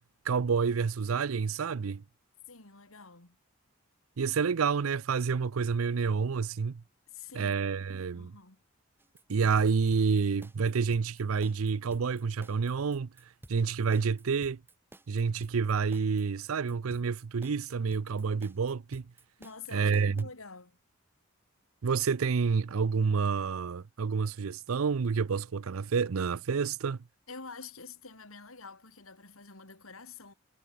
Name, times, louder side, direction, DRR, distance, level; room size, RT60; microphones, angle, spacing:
voice 1, 0.3-2.0 4.2-6.8 7.4-8.3 9.3-13.1 13.5-14.6 15.1-19.1 19.7-20.2 21.8-27.0, right 5 dB, 90° right, 0.5 m, -29 dB
voice 2, 2.5-3.4 7.1-7.5 8.1-8.6 19.4-20.8 27.3-30.3, left 4 dB, 85° left, 5.0 m, -47 dB
sound 1, 9.0-20.2, right 1 dB, 10° right, 0.9 m, -53 dB
head